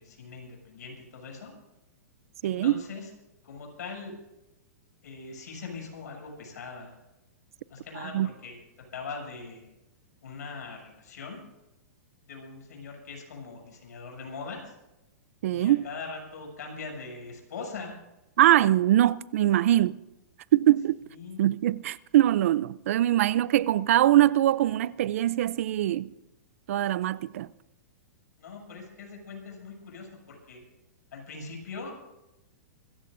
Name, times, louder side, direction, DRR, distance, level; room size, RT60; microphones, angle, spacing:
voice 1, 0.0-1.5 2.4-3.1 3.4-4.1 5.0-6.9 7.7-8.6 8.9-9.7 10.2-11.4 12.3-14.7 15.5-17.9 21.1-21.4 28.4-30.6 31.1-32.0, left 4 dB, 80° left, 7.1 m, -41 dB
voice 2, 2.4-2.8 8.1-8.3 15.4-15.8 18.4-20.0 20.5-21.0 21.4-26.1 26.7-27.5, right 13 dB, 55° right, 0.5 m, -22 dB
25.5 x 15.0 x 2.6 m
hypercardioid pair, 160°, 9 cm